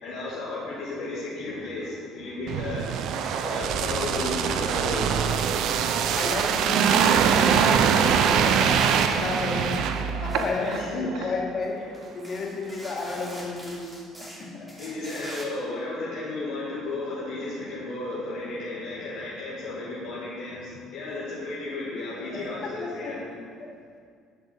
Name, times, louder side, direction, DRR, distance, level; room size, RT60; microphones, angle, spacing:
voice 1, 0.0-2.8 3.4-5.5 9.5-9.7 10.6-11.3 11.7-11.8 14.8-23.2, left 2 dB, 75° left, -9 dB, 2.4 m, -34 dB
sound 1, 2.5-10.8 11.1-11.3, right 7 dB, 65° right, 0.7 m, -23 dB
voice 2, 6.2-8.8 9.1-11.8 12.1-14.7 21.1-21.2 22.3-23.1 23.6-23.7, left 3 dB, 50° left, -2 dB, 2.8 m, -33 dB
sound 2, 8.6-10.9 11.6-11.7 11.9-15.5, right 1 dB, 15° right, 3.0 m, -43 dB
12.0 x 5.9 x 6.4 m, 2.1 s
hypercardioid pair, 60°, 0 cm